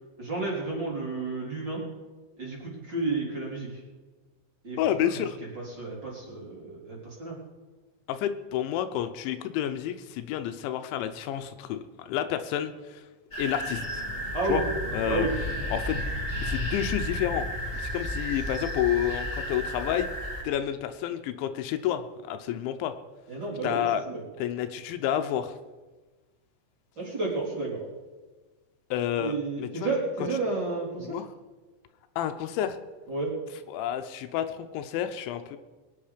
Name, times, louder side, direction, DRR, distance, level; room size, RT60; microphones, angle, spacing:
voice 1, 0.2-1.8 2.4-3.8 4.6-5.1 5.5-7.4 14.3-14.6 15.0-15.3 23.3-24.2 27.0-27.9 29.2-31.2 33.1-33.3, right 3 dB, 25° right, -4 dB, 3.9 m, -31 dB
voice 2, 4.8-5.4 8.1-13.0 13.4-13.8 14.5-14.6 14.9-15.2 15.7-16.0 16.4-17.5 17.7-20.1 20.4-22.9 23.6-24.0 24.4-25.5 28.9-29.9 31.0-31.3 32.2-32.8 33.7-35.6, left 10 dB, 80° left, 9 dB, 3.0 m, -30 dB
sound 1, 13.3-20.4, equal, 35° left, 0.8 m, -32 dB
22.5 x 9.5 x 5.1 m, 1.3 s
omnidirectional pair, 5.3 m